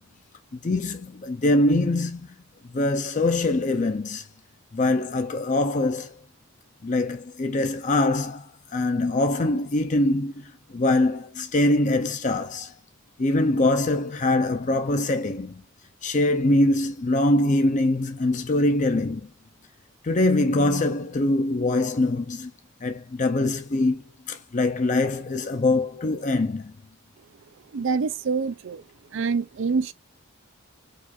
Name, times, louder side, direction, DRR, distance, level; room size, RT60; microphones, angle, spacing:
voice 1, 0.6-2.3 2.7-4.3 4.7-6.1 6.8-12.7 13.2-15.6 16.0-19.3 20.0-22.5 22.8-26.7, left 2 dB, 35° left, 0.5 m, -23 dB
voice 2, 27.7-28.8 29.1-29.9, right 5 dB, 55° right, 0.4 m, -26 dB
4.8 x 2.4 x 4.2 m
head